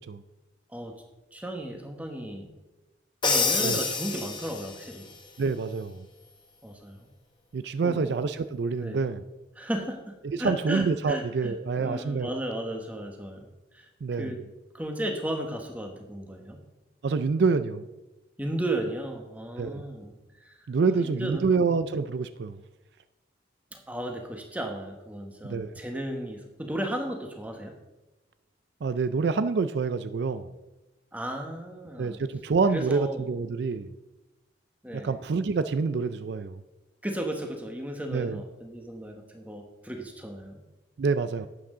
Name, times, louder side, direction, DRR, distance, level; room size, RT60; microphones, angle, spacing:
voice 1, 1.3-2.5 3.2-5.2 6.6-7.1 7.8-8.1 8.8-9.0 9.6-13.5 13.7-13.9 14.2-14.4 14.7-16.6 18.4-20.1 20.4-20.6 21.0-21.5 23.7-27.7 31.1-32.2 32.7-33.3 34.8-35.1 37.0-40.6, right 1 dB, 10° right, 3 dB, 1.2 m, -35 dB
Crash cymbal, 3.2-4.9, left 4 dB, 25° left, 1.1 m, -27 dB
voice 2, 5.4-6.1 7.5-9.2 10.2-12.3 14.0-14.3 17.0-17.9 19.6-19.8 20.7-22.6 25.5-25.8 28.8-30.5 32.0-33.9 34.9-36.6 38.1-38.4 41.0-41.5, right 4 dB, 60° right, 12 dB, 0.4 m, -27 dB
11.5 x 8.6 x 3.8 m, 1.1 s
head